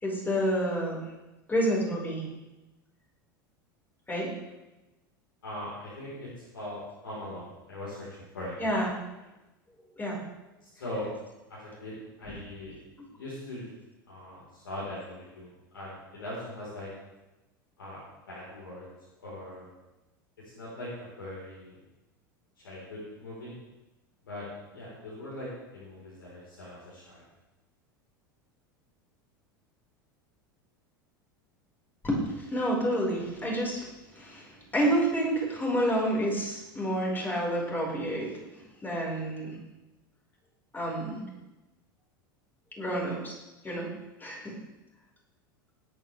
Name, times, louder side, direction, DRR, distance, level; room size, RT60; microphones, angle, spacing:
voice 1, 0.0-1.0 1.5-2.3 4.1-4.3 8.6-8.9 10.0-10.2 12.3-12.4 32.0-33.9 34.1-38.3 38.8-39.6 40.7-41.2 42.8-43.3 43.6-43.9 44.2-44.5, equal, 15° left, -3 dB, 5.3 m, -29 dB
voice 2, 5.4-8.6 10.7-11.1 11.5-11.9 12.2-12.8 13.1-13.7 14.1-16.9 17.8-18.0 18.3-18.9 19.2-19.7 20.5-21.8 22.6-23.5 24.2-27.3, left 1 dB, 80° left, -8 dB, 4.6 m, -41 dB
20.0 x 9.2 x 3.5 m, 1.0 s
hypercardioid pair, 85°, 11 cm